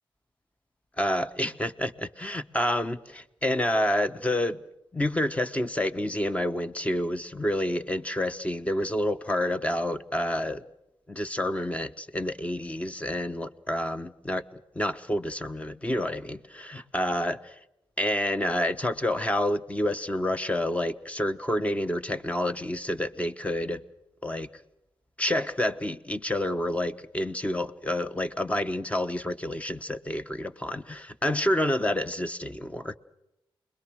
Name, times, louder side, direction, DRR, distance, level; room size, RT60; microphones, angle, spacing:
voice 1, 1.0-4.6 4.9-10.6 11.1-14.4 14.7-17.4 18.0-23.8 24.2-24.5 25.2-33.0, left 1 dB, 15° left, 1.1 m, -28 dB
29.0 x 22.0 x 6.4 m
wide cardioid pair, 115°, 9 cm